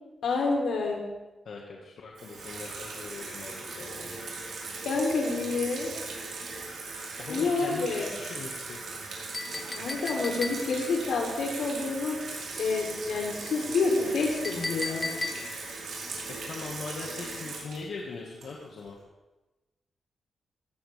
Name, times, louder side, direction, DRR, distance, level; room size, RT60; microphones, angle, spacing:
voice 1, 0.2-1.1 4.8-6.0 7.3-8.1 9.8-15.1, left 3 dB, 90° left, 0 dB, 3.5 m, -28 dB
voice 2, 1.5-4.2 7.2-8.9 16.4-19.0, left 4 dB, 65° left, -2 dB, 1.9 m, -41 dB
Water tap faucet / Sink (filling or washing), 2.2-18.9, right 3 dB, 75° right, 4.7 m, -39 dB
Chink clink, 9.3-10.9 14.4-15.7, left 3 dB, 20° left, 0.8 m, -36 dB
18.0 x 14.5 x 3.6 m, 1.1 s
wide cardioid pair, 155°, 0 cm